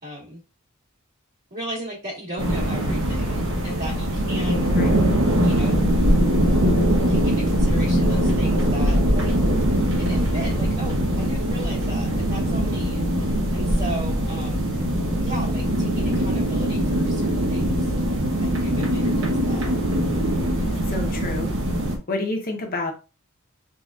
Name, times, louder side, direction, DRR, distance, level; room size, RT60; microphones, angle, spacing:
voice 1, 0.0-0.4 1.5-4.7 5.4-5.8 7.1-9.3 10.0-14.7 15.2-17.9 18.4-19.7, right 1 dB, 50° right, -8 dB, 2.0 m, -36 dB
sound 1, 2.4-22.0, equal, 65° right, 1.0 m, -22 dB
voice 2, 14.4-15.0 20.8-21.5 22.1-22.9, left 2 dB, 45° left, 3 dB, 1.1 m, -30 dB
4.0 x 3.9 x 2.4 m, 0.30 s
head